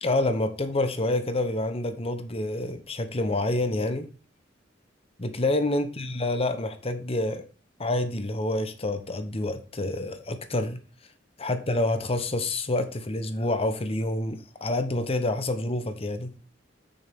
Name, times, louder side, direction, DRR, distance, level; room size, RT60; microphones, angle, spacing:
voice 1, 0.0-4.1 5.2-7.5 7.8-10.8 11.4-16.3, left 2 dB, 30° left, 0.9 m, -27 dB
8.6 x 6.4 x 3.6 m
head